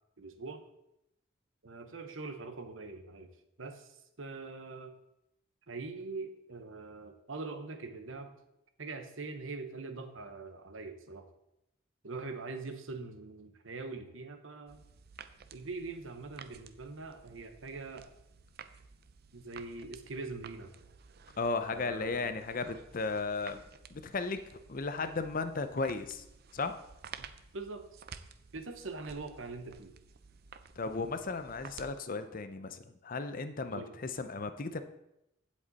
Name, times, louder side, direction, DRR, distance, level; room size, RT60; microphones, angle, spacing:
voice 1, 0.2-0.6 1.6-3.3 3.6-4.9 5.7-8.4 8.8-11.3 12.0-14.8 15.5-18.1 19.3-20.7 21.7-22.3 27.5-28.0 28.5-29.9 33.7-33.9, right 3 dB, 80° right, 7 dB, 1.0 m, -43 dB
sound 1, 14.7-31.9, right 6 dB, 50° right, 0.5 m, -53 dB
voice 2, 21.4-23.6 23.9-24.4 24.7-26.2 26.5-26.8 30.8-34.8, left 3 dB, 45° left, 9 dB, 0.6 m, -35 dB
15.5 x 5.2 x 4.1 m, 0.84 s
head